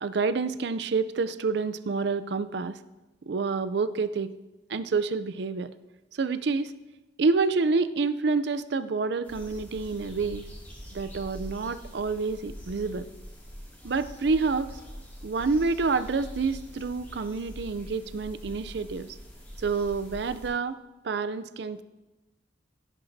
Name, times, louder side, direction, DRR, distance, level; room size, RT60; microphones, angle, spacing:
voice 1, 0.0-2.8 3.3-4.3 4.7-5.7 6.1-6.7 7.2-10.4 10.9-13.1 13.8-14.8 15.2-19.2 19.6-21.8, right 4 dB, 60° right, 14 dB, 0.5 m, -28 dB
sound 1, 9.2-20.5, equal, 10° left, 2.3 m, -44 dB
16.5 x 11.0 x 2.7 m, 1.1 s
head